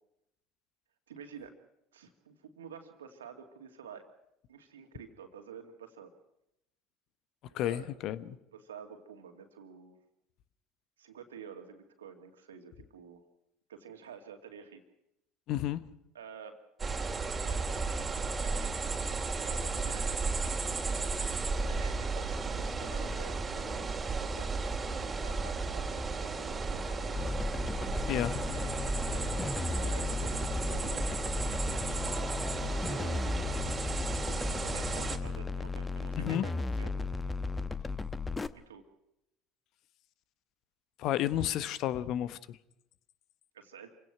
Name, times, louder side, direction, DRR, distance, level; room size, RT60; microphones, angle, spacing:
voice 1, 1.1-1.5 1.9-4.0 4.5-6.1 7.5-7.9 8.3-10.0 11.0-13.2 13.7-14.8 16.1-16.6 17.4-17.7 19.2-20.5 21.6-27.2 28.2-29.3 29.7-31.1 32.6-33.4 34.3-36.9 38.5-38.8 43.5-43.9, right 7 dB, 85° right, 5 dB, 2.5 m, -50 dB
voice 2, 7.5-8.4 15.5-15.8 28.1-28.4 36.2-36.5 41.0-42.6, left 12 dB, 60° left, 15 dB, 1.1 m, -31 dB
sound 1, 16.8-35.2, right 4 dB, 25° right, 2.8 m, -34 dB
sound 2, 27.2-38.5, left 3 dB, 20° left, 1.0 m, -35 dB
27.5 x 17.0 x 6.1 m, 0.82 s
hypercardioid pair, 70°, 0 cm